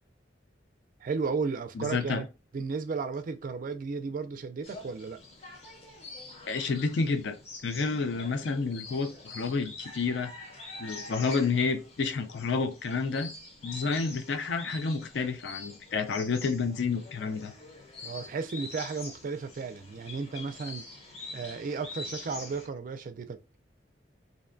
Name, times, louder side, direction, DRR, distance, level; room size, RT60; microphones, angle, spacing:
voice 1, 1.0-2.3 2.5-5.2 18.0-20.9 21.3-23.4, right 4 dB, 50° right, 0.4 m, -34 dB
voice 2, 1.8-2.2 6.4-7.4 7.6-10.3 10.8-13.3 13.6-17.5, left 4 dB, 70° left, 0.4 m, -30 dB
sound 1, 4.6-22.7, left 3 dB, 35° left, 0.7 m, -45 dB
2.6 x 2.1 x 2.5 m
head